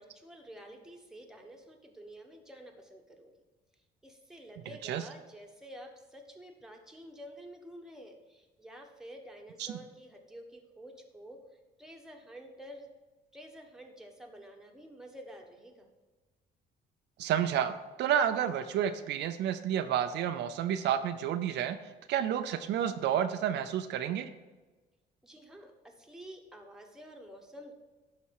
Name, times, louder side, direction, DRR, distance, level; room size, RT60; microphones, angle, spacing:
voice 1, 0.0-3.3 4.0-11.4 11.8-12.9 13.3-15.9 25.2-27.7, equal, 5° right, 2 dB, 1.3 m, -50 dB
voice 2, 17.2-17.7 18.0-21.8 22.1-24.3, right 9 dB, 75° right, 9 dB, 0.5 m, -30 dB
11.5 x 4.2 x 4.7 m, 1.2 s
cardioid pair, 110°, 18 cm